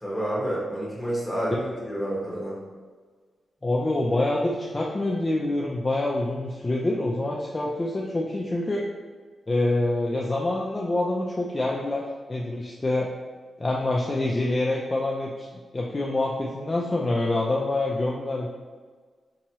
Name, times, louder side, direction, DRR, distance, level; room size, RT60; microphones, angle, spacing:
voice 1, 0.0-2.6, right 1 dB, ahead, -6 dB, 1.2 m, -29 dB
voice 2, 3.6-8.9 9.5-13.1 13.6-15.5 15.7-18.5, left 2 dB, 20° left, -3 dB, 0.4 m, -26 dB
4.5 x 3.0 x 2.8 m, 1.5 s
wide cardioid pair, 145°, 0 cm